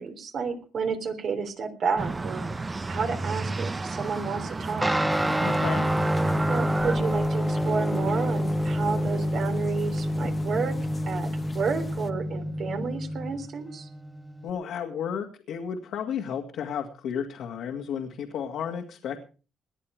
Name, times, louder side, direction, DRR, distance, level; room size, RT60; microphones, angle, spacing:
voice 1, 0.0-2.5 2.9-5.0 6.5-10.8 11.1-11.3 11.5-13.9, right 5 dB, 60° right, 6 dB, 3.4 m, -31 dB
sound 1, 2.0-7.0, right 3 dB, 25° right, 1.0 m, -32 dB
Guitar, 4.8-14.5, equal, 10° right, 1.6 m, -27 dB
sound 2, 5.1-12.1, left 3 dB, 25° left, 1.1 m, -41 dB
voice 2, 5.4-5.9 14.4-19.2, left 8 dB, 80° left, 1 dB, 2.3 m, -33 dB
20.0 x 11.0 x 5.0 m, 0.37 s
cardioid pair, 90°, 0 cm